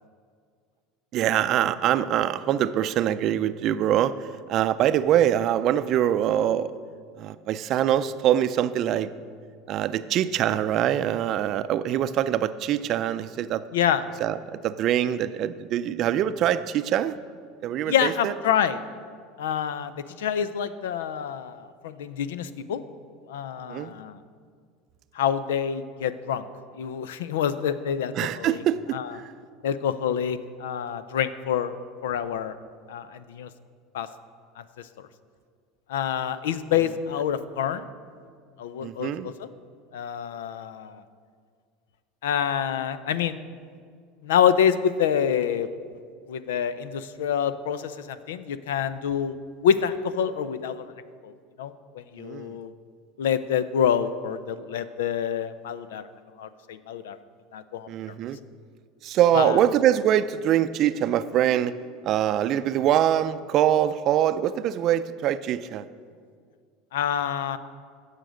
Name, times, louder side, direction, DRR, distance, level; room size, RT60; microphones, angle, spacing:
voice 1, 1.1-6.7 7.2-9.1 9.7-13.6 14.2-17.2 17.6-18.3 23.7-23.9 28.1-29.3 38.8-39.3 52.2-52.6 57.9-58.4 59.0-61.7 62.0-65.9, right 11 dB, 50° right, 13 dB, 0.5 m, -24 dB
voice 2, 13.7-14.0 17.9-18.8 19.4-22.8 23.3-24.2 25.1-26.4 26.8-28.6 28.9-29.1 29.6-31.8 32.0-32.6 32.9-33.5 33.9-34.1 35.0-35.1 35.9-37.9 38.6-39.5 39.9-41.0 42.2-43.4 44.2-45.7 46.3-49.4 49.6-50.9 51.2-51.3 51.6-52.7 53.2-56.1 56.4-57.2 57.5-57.9 59.3-59.6 66.9-67.6, left 8 dB, 90° left, 14 dB, 0.5 m, -27 dB
16.5 x 6.6 x 5.1 m, 2.1 s
supercardioid pair, 115°, 0 cm